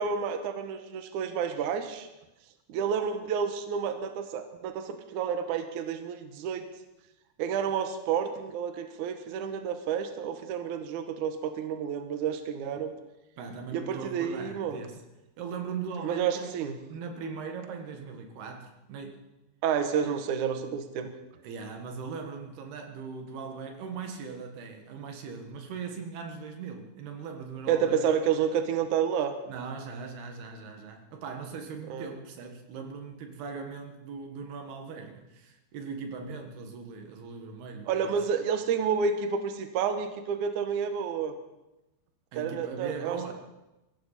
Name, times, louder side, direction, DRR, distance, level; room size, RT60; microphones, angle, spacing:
voice 1, 0.0-2.1 2.7-6.7 7.4-12.9 13.7-14.8 16.0-16.8 19.6-21.1 27.7-29.3 31.9-32.1 37.9-41.3 42.4-43.3, right 7 dB, 65° right, 7 dB, 2.3 m, -30 dB
voice 2, 13.4-15.0 15.4-16.5 16.9-19.2 20.0-20.2 21.4-28.0 29.5-38.2 42.3-43.3, right 5 dB, 90° right, 5 dB, 3.8 m, -39 dB
22.5 x 15.5 x 4.2 m, 0.97 s
omnidirectional pair, 4.5 m